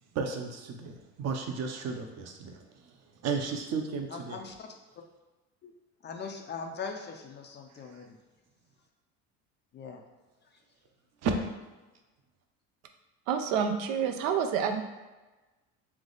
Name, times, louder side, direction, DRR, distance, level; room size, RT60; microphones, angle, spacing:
voice 1, 0.1-2.9 3.2-4.4 7.9-8.0 11.2-11.3, right 5 dB, 40° right, 4 dB, 0.7 m, -33 dB
voice 2, 4.1-4.7 5.6-5.7 6.0-8.2 9.7-10.0, left 5 dB, 30° left, 3 dB, 0.4 m, -40 dB
voice 3, 13.3-14.8, right 7 dB, 80° right, 6 dB, 0.6 m, -28 dB
3.5 x 3.0 x 3.9 m, 1.2 s
supercardioid pair, 110°, 39 cm